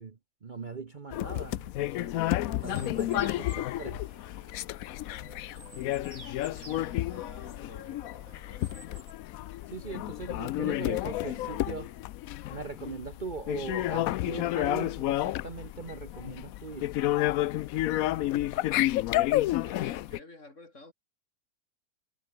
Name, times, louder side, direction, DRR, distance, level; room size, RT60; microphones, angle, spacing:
voice 1, 0.0-4.0 9.7-11.9 12.5-16.9, right 4 dB, 35° right, 1.1 m, -40 dB
sound 1, 1.1-20.2, left 15 dB, 70° left, 0.9 m, -31 dB
sound 2, 2.6-9.1, right 3 dB, 65° right, 4.4 m, -53 dB
voice 2, 2.7-3.2 5.0-9.2 18.4-20.9, left 2 dB, 50° left, 4.8 m, -52 dB
omnidirectional pair, 1.6 m